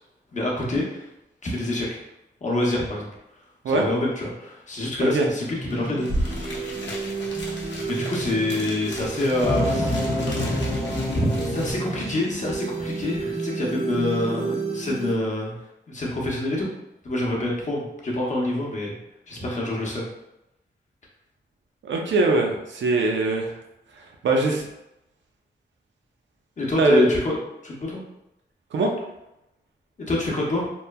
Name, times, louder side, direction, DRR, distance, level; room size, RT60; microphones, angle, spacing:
voice 1, 0.3-1.1 1.4-2.0 2.4-3.1 3.7-6.9 7.9-10.7 11.1-15.6 15.9-16.7 17.0-19.0 19.3-20.0 26.6-27.4 27.6-28.0 30.1-30.7, left 1 dB, 40° left, -3 dB, 0.7 m, -27 dB
sound 1, 5.5-15.1, right 3 dB, 30° right, 0.7 m, -32 dB
sound 2, 5.7-5.8 6.0-11.7, equal, 80° left, 0.6 m, -34 dB
sound 3, 9.4-12.2, left 1 dB, 15° left, 0.3 m, -26 dB
voice 2, 21.8-23.5 24.2-24.7 26.8-27.0 28.7-28.9, right 2 dB, 90° right, 1 dB, 0.5 m, -21 dB
3.0 x 2.1 x 2.2 m, 0.89 s
wide cardioid pair, 125°, 19 cm